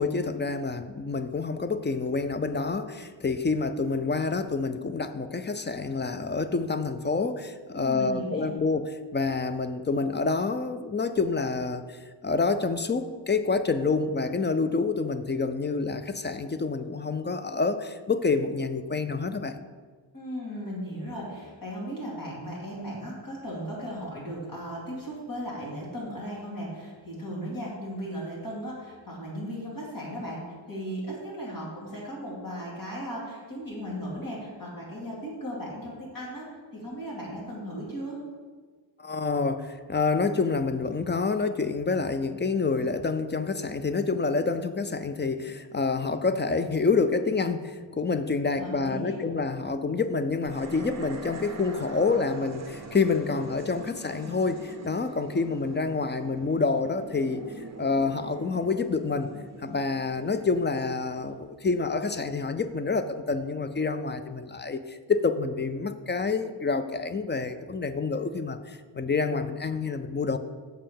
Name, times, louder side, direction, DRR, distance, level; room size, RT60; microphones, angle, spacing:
voice 1, 0.0-19.6 39.0-59.3 59.6-70.4, left 4 dB, 25° left, 10 dB, 0.3 m, -28 dB
voice 2, 7.7-8.5 20.1-38.2 48.6-49.2, equal, 45° left, -5 dB, 2.7 m, -36 dB
sound 1, 50.4-61.8, right 3 dB, 35° right, 0.7 m, -43 dB
6.7 x 5.5 x 6.9 m, 1.5 s
wide cardioid pair, 160°, 48 cm